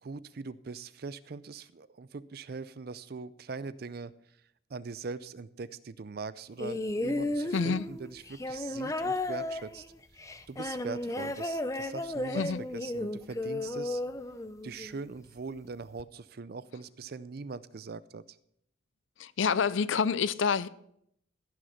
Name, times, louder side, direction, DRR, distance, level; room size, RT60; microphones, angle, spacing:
voice 1, 0.0-4.4 4.7-9.9 10.5-14.0 14.6-18.4, right 4 dB, 50° right, 0.4 m, -41 dB
sound 1, 6.6-15.0 16.0-16.1, left 2 dB, 15° left, 0.5 m, -34 dB
voice 2, 7.5-7.9 12.3-12.6 19.2-20.7, left 6 dB, 75° left, 0.5 m, -27 dB
15.0 x 6.3 x 5.8 m
head